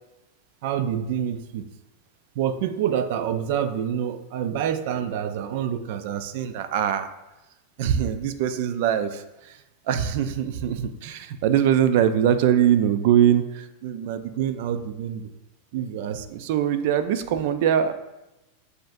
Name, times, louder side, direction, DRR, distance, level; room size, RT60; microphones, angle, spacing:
voice 1, 0.6-1.6 2.4-7.1 7.8-15.3 15.7-17.9, right 9 dB, 60° right, 10 dB, 0.4 m, -24 dB
7.6 x 2.6 x 2.5 m, 0.99 s
supercardioid pair, 140°, 0 cm